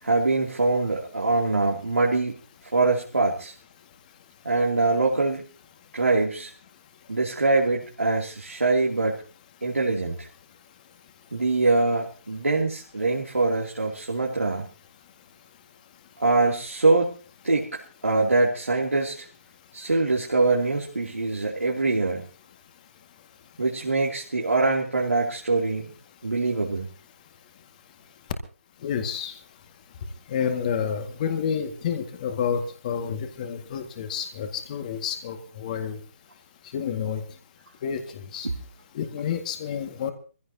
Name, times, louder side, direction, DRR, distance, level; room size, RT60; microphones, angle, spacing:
voice 1, 0.0-2.4 2.7-3.5 4.4-5.4 5.9-6.5 7.1-9.2 9.6-10.3 11.3-14.7 16.2-17.2 17.4-19.3 19.7-22.3 23.6-25.9 26.2-26.9 38.4-38.5, right 3 dB, 80° right, -3 dB, 2.8 m, -23 dB
voice 2, 28.8-29.3 30.3-36.0 36.7-37.2 37.8-38.5 38.9-40.1, left 7 dB, 35° left, 6 dB, 1.9 m, -29 dB
25.0 x 16.0 x 2.8 m, 0.38 s
figure-of-eight pair, 145°, 7 cm